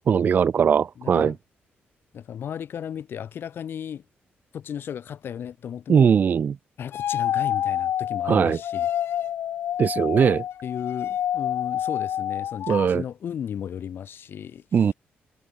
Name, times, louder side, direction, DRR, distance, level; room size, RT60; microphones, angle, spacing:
voice 1, 0.1-1.3 5.9-6.6 8.3-8.6 9.8-10.4 12.7-13.0 14.7-14.9, right 7 dB, 45° right, 0.6 m, -20 dB
voice 2, 1.0-1.3 2.1-4.0 4.5-6.1 6.8-8.9 10.6-14.9, left 8 dB, 65° left, 7.5 m, -35 dB
sound 1, 6.9-12.9, left 10 dB, 80° left, 1.2 m, -28 dB
cardioid pair, 130°, 4 cm